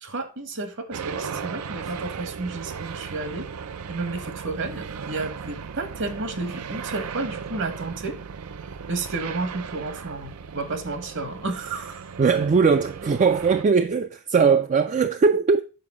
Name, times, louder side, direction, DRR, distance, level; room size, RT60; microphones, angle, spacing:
voice 1, 0.0-3.5 3.9-8.2 8.9-12.1, right 3 dB, 55° right, 1.1 m, -32 dB
sound 1, 0.9-13.6, right 6 dB, 85° right, 0.5 m, -36 dB
voice 2, 12.2-15.6, right 5 dB, 35° right, 0.3 m, -20 dB
6.7 x 4.4 x 4.8 m
head